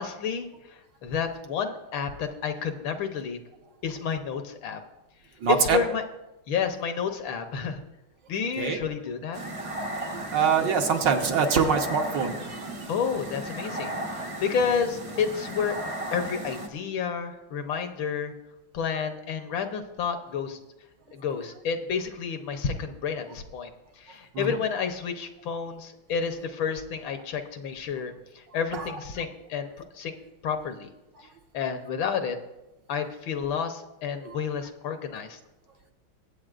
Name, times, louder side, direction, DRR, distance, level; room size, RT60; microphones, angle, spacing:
voice 1, 0.0-3.4 3.8-4.8 5.6-6.0 6.5-7.8 8.3-9.4 12.9-15.8 16.1-18.3 18.7-20.6 21.1-23.7 24.0-30.2 30.4-30.9 31.5-32.4 32.9-35.4, left 6 dB, 70° left, 7 dB, 1.6 m, -30 dB
voice 2, 5.4-5.8 8.6-8.8 10.0-12.9 24.3-24.6 28.7-29.0 34.2-34.4, right 6 dB, 65° right, 3 dB, 1.6 m, -25 dB
sound 1, 9.3-16.7, right 1 dB, 30° right, 0.6 m, -35 dB
22.5 x 8.4 x 2.5 m, 0.95 s
omnidirectional pair, 2.3 m